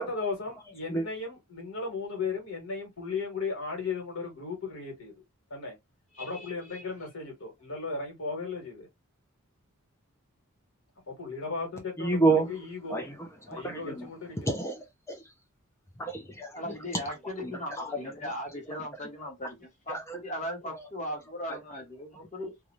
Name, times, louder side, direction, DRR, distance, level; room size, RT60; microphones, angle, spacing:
voice 1, 0.0-5.1 5.5-5.8 6.2-8.9 11.1-13.0 13.5-14.5, left 4 dB, 65° left, 1.3 m, -36 dB
voice 2, 0.7-1.1 12.0-15.3 16.0-18.9 19.4-19.5 19.9-21.6, right 2 dB, 10° left, 0.5 m, -32 dB
voice 3, 6.1-6.8 16.6-22.6, left 1 dB, 35° left, 1.1 m, -38 dB
2.5 x 2.3 x 3.0 m
head